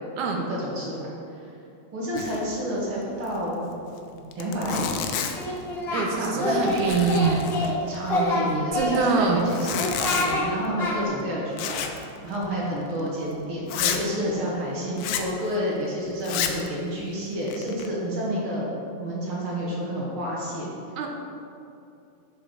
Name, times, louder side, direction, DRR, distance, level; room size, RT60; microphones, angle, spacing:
voice 1, 0.5-1.4 1.9-3.7 4.1-4.9 6.2-6.6 7.9-20.7, equal, 50° right, -5 dB, 2.0 m, -29 dB
Zipper (clothing), 2.2-2.5 2.8-2.9 3.2-3.4 4.0-4.1 4.3-5.6 6.1-6.4 6.6-8.0 9.4-10.4 11.6-12.0 12.3-12.5 13.0-13.1 13.7-14.0 15.0-15.3 16.2-16.7 17.3-17.9, left 8 dB, 85° left, 2.1 m, -30 dB
Singing, 5.4-6.1 6.4-7.7 8.0-9.3 9.8-10.4 10.8-10.9, left 2 dB, 35° left, 1.7 m, -26 dB
voice 2, 5.9-7.5 8.7-9.4 21.0-21.1, right 5 dB, 85° right, 1 dB, 2.2 m, -24 dB
6.6 x 6.6 x 4.9 m, 2.7 s
omnidirectional pair, 3.4 m